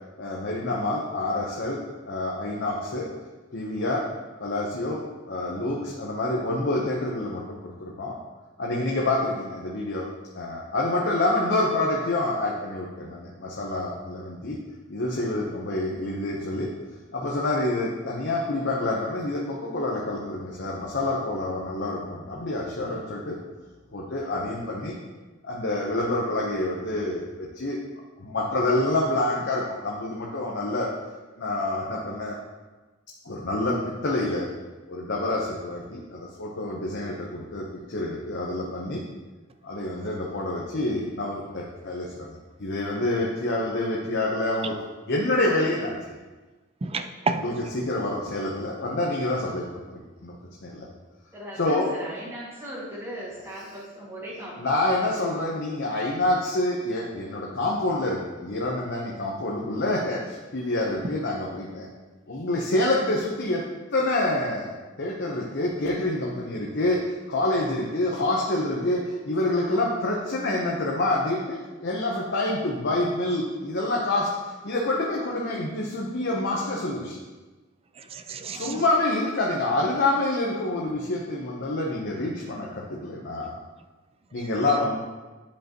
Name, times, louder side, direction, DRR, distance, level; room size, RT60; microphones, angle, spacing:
voice 1, 0.2-3.1 3.5-4.0 4.4-8.2 8.6-10.1 10.3-14.6 14.9-16.7 17.1-23.4 23.9-24.9 25.4-27.8 28.2-30.9 31.4-32.4 33.2-34.5 34.9-39.0 39.6-44.7 45.1-46.0 47.4-50.3 50.6-50.8 51.6-51.9 54.6-61.9 62.3-74.4 74.6-77.2 78.5-83.5 84.3-85.0, left 2 dB, 60° left, -3 dB, 0.9 m, -27 dB
voice 2, 46.8-47.7 77.9-78.8 84.3-84.8, right 4 dB, 30° right, 9 dB, 0.4 m, -32 dB
voice 3, 51.3-54.9, equal, 15° right, -7 dB, 2.1 m, -38 dB
10.5 x 5.3 x 3.0 m, 1.2 s
head